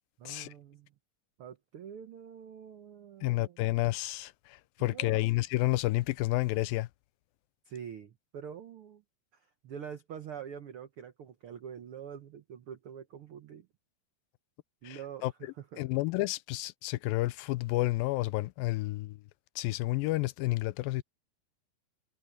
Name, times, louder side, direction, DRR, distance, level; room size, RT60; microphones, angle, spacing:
voice 1, 0.2-0.9 1.4-3.6 4.8-5.3 7.6-9.0 9.3-13.7 14.8-15.8, right 8 dB, 90° right, 1.2 m, -45 dB
voice 2, 3.2-6.9 14.8-15.3 15.8-19.2 19.6-21.0, left 19 dB, 85° left, 2.4 m, -30 dB
omnidirectional pair, 4.1 m